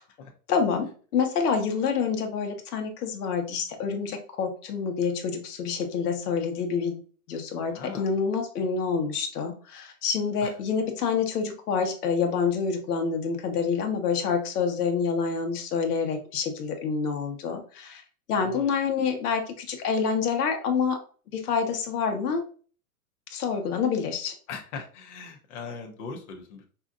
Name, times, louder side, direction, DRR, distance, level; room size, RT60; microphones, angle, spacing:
voice 1, 0.5-7.0 7.3-18.0 18.3-21.0 21.3-22.4 23.3-24.3, left 5 dB, 85° left, 4 dB, 1.1 m, -27 dB
voice 2, 7.7-8.1 10.4-10.5 18.4-18.7 24.5-26.6, left 5 dB, 50° left, 2 dB, 0.9 m, -40 dB
4.8 x 2.7 x 2.4 m, 0.40 s
supercardioid pair, 160°, 45 cm